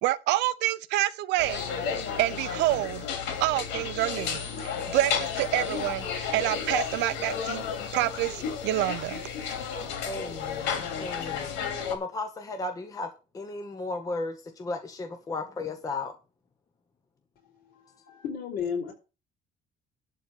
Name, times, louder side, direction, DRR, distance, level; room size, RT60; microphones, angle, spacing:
voice 1, 0.0-1.6 2.2-3.0 3.4-7.6 7.9-9.2, right 16 dB, 80° right, 0.9 m, -27 dB
sound 1, 1.4-12.0, left 7 dB, 90° left, 3.0 m, -32 dB
voice 2, 10.0-11.5 11.9-13.1 13.3-16.1, left 2 dB, 20° left, 1.1 m, -35 dB
voice 3, 17.5-18.9, left 7 dB, 60° left, 4.7 m, -34 dB
12.0 x 4.3 x 8.0 m
cardioid pair, 175°, 18 cm